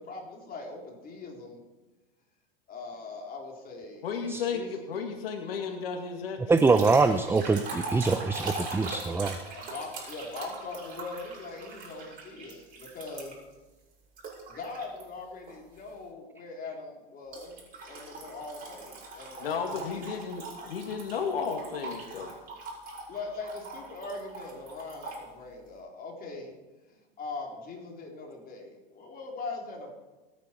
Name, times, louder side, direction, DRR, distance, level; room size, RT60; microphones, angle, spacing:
voice 1, 0.0-1.6 2.7-4.1 4.3-4.7 9.4-13.3 14.5-17.6 17.9-20.2 23.1-26.5 26.9-29.9, left 3 dB, 30° left, 0 dB, 4.1 m, -41 dB
voice 2, 4.0-6.4 6.7-6.8 7.1-7.3 19.4-22.4, left 6 dB, 80° left, 4 dB, 2.3 m, -33 dB
voice 3, 6.5-9.4, right 4 dB, 10° right, 10 dB, 0.6 m, -24 dB
sound 1, 6.6-13.5 14.2-15.0 15.5-15.8 17.3-25.2, right 3 dB, 30° right, 6.5 m, -41 dB
25.0 x 9.5 x 4.6 m, 1.1 s
hypercardioid pair, 100°, 29 cm